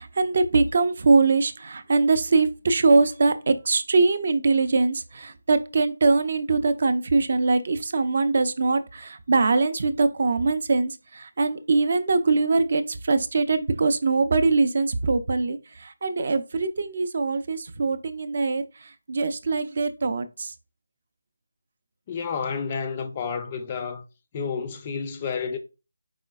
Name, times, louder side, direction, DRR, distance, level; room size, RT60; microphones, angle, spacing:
voice 1, 0.0-20.5, right 3 dB, 45° right, 0.4 m, -22 dB
voice 2, 22.1-24.0 24.3-25.6, left 6 dB, 20° left, 0.4 m, -30 dB
4.9 x 3.9 x 2.3 m
figure-of-eight pair, 170°, 0 cm